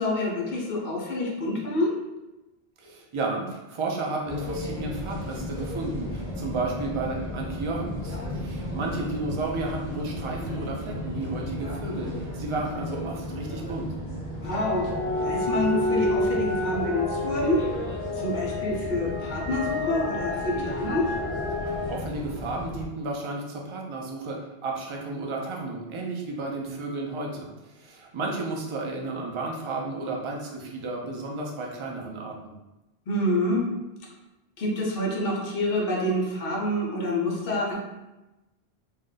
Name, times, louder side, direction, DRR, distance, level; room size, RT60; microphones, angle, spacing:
voice 1, 0.0-2.0 14.4-14.9 15.2-17.7 18.1-21.1 33.1-33.7 34.6-37.8, left 1 dB, 65° left, -2 dB, 0.9 m, -27 dB
voice 2, 2.8-13.9 21.7-32.5, right 3 dB, 50° right, -1 dB, 0.3 m, -33 dB
sound 1, 4.2-22.8, left 1 dB, 5° right, 0.7 m, -35 dB
sound 2, 14.5-21.9, left 2 dB, 30° left, 0.5 m, -29 dB
2.6 x 2.1 x 3.7 m, 1.0 s
omnidirectional pair, 1.1 m